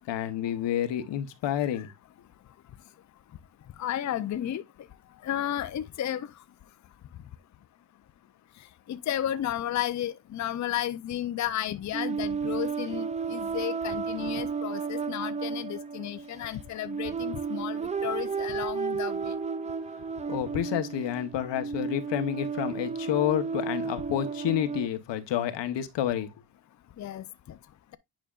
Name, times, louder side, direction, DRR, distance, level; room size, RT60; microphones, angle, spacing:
voice 1, 0.1-1.9 20.3-26.3, left 11 dB, 85° left, 1.1 m, -29 dB
voice 2, 3.8-4.6 5.2-6.3 8.9-19.3 27.0-27.2, left 11 dB, 45° left, 0.5 m, -33 dB
sound 1, 11.9-24.9, right 5 dB, 20° right, 0.3 m, -33 dB
9.3 x 5.1 x 2.4 m
cardioid pair, 135°, 42 cm